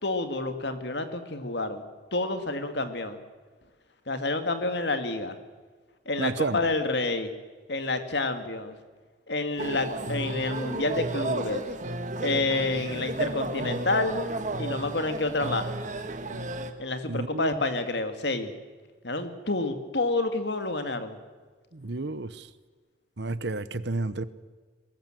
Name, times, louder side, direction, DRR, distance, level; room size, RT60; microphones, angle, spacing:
voice 1, 0.0-3.2 4.1-5.4 6.1-7.3 7.7-8.8 9.3-11.6 12.2-14.2 14.6-15.7 16.8-18.5 19.0-21.2, left 2 dB, 60° left, 8 dB, 2.1 m, -29 dB
voice 2, 6.2-6.6 17.1-17.5 21.7-22.5 23.2-24.3, right 2 dB, 60° right, 15 dB, 1.0 m, -31 dB
sound 1, 9.6-16.7, right 2 dB, 40° right, 1.7 m, -33 dB
22.5 x 21.0 x 7.7 m, 1.4 s
head